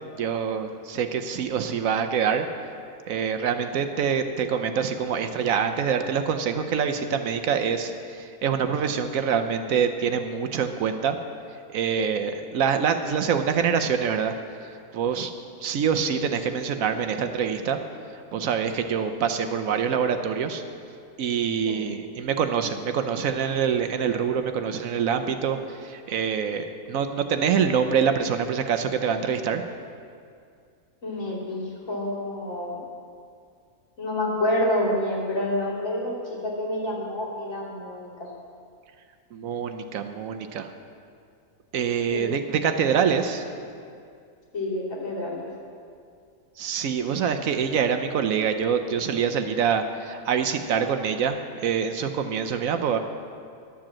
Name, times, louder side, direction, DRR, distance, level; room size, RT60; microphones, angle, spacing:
voice 1, 0.2-2.5 3.1-11.2 11.7-14.4 14.6-15.3 15.6-17.8 18.3-20.6 21.2-29.6 39.3-40.7 41.7-43.5 46.6-53.0, right 7 dB, 70° right, 7 dB, 1.0 m, -25 dB
voice 2, 31.0-32.8 34.0-36.1 36.4-38.1 42.1-42.3 44.5-45.5, left 1 dB, 60° left, -6 dB, 3.2 m, -28 dB
11.5 x 7.6 x 7.4 m, 2.3 s
omnidirectional pair, 1.6 m